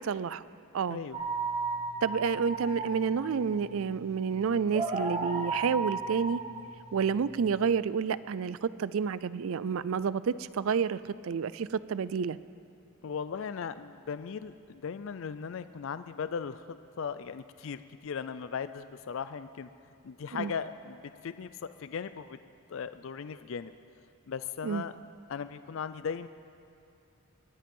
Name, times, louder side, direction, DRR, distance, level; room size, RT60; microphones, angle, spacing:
voice 1, 0.0-0.4 0.7-1.0 2.0-6.4 6.9-12.4 20.4-20.5 24.6-24.8, right 6 dB, 65° right, 17 dB, 0.4 m, -29 dB
sound 1, 1.1-7.7, right 3 dB, 25° right, 1.8 m, -35 dB
voice 2, 13.0-19.7 20.0-22.4 22.7-23.7 24.3-24.9 25.3-26.3, left 6 dB, 60° left, 13 dB, 0.4 m, -38 dB
22.0 x 10.5 x 5.4 m, 2.6 s
head